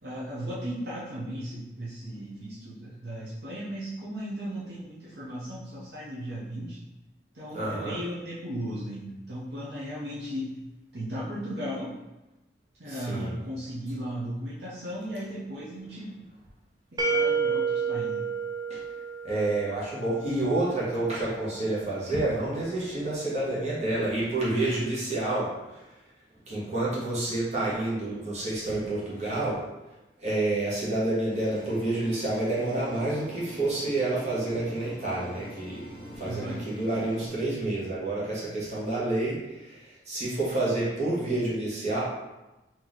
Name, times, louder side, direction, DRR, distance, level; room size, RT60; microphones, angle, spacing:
voice 1, 0.0-6.8 7.3-10.6 10.9-12.0 12.8-16.2 16.9-18.2 24.5-25.0 36.2-36.6, equal, 70° right, -8 dB, 0.8 m, -36 dB
voice 2, 7.5-7.9 12.9-13.3 18.7-18.8 19.2-25.8 26.5-29.6 30.2-42.0, right 2 dB, 40° right, -8 dB, 1.3 m, -29 dB
sound 1, 17.0-19.8, right 5 dB, 20° right, 0.4 m, -28 dB
sound 2, 31.3-37.3, equal, 30° left, 0.7 m, -44 dB
3.0 x 2.9 x 4.0 m, 1.0 s
head